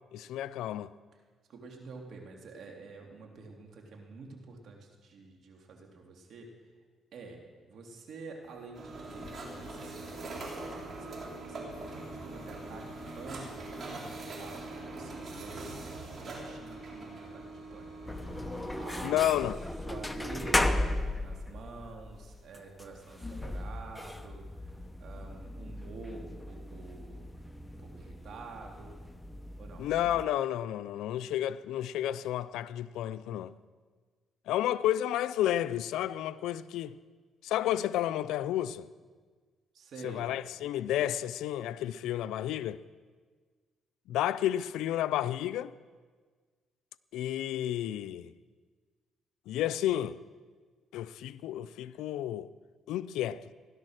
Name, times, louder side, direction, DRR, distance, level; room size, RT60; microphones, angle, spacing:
voice 1, 0.1-0.9 19.0-19.6 29.8-33.5 34.5-37.0 37.4-38.9 40.0-42.8 44.1-45.7 47.1-48.3 49.5-50.2 50.9-52.5 52.9-53.5, left 12 dB, 90° left, 0.4 m, -31 dB
voice 2, 1.5-6.5 7.1-7.4 7.7-13.7 14.1-19.2 19.9-29.0 29.6-29.9 39.7-40.3, right 4 dB, 65° right, 2.9 m, -48 dB
sound 1, 8.4-8.8 9.1-14.0, left 5 dB, 65° left, 2.1 m, -55 dB
sound 2, 8.7-19.0, right 2 dB, 50° right, 4.0 m, -42 dB
sound 3, 18.0-30.3, left 1 dB, 10° left, 0.9 m, -36 dB
16.5 x 11.5 x 6.5 m
cardioid pair, 90°, 0 cm